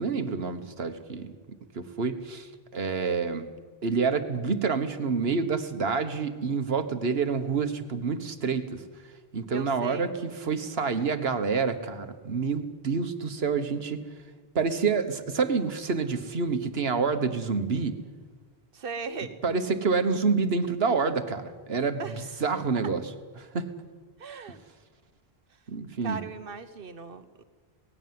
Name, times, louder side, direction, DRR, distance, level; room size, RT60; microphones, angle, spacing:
voice 1, 0.0-3.5 3.8-8.8 9.3-14.0 14.5-18.0 19.4-23.0 23.4-23.7 25.7-26.2, right 5 dB, 80° right, 9 dB, 1.5 m, -28 dB
voice 2, 9.5-10.1 18.7-19.4 22.0-22.2 24.2-24.6 26.0-27.4, right 5 dB, 65° right, 11 dB, 1.3 m, -38 dB
18.5 x 16.0 x 9.5 m, 1.4 s
omnidirectional pair, 1.0 m